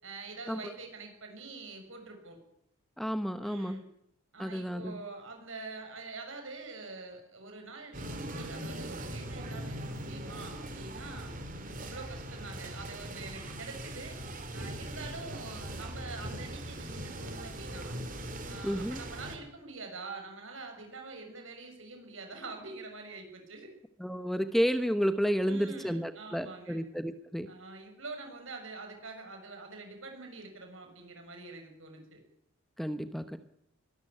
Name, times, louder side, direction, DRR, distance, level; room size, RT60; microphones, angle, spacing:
voice 1, 0.0-2.4 3.4-3.9 4.3-11.4 11.8-14.2 14.5-18.0 18.4-23.7 25.5-26.8 27.5-32.2, right 3 dB, 65° right, 4 dB, 6.8 m, -45 dB
voice 2, 3.0-3.8 4.4-5.0 18.6-19.0 24.0-27.5 32.8-33.4, equal, ahead, 10 dB, 0.8 m, -31 dB
sound 1, 7.9-19.4, right 1 dB, 40° right, 3.1 m, -40 dB
22.5 x 13.0 x 9.9 m, 0.75 s
head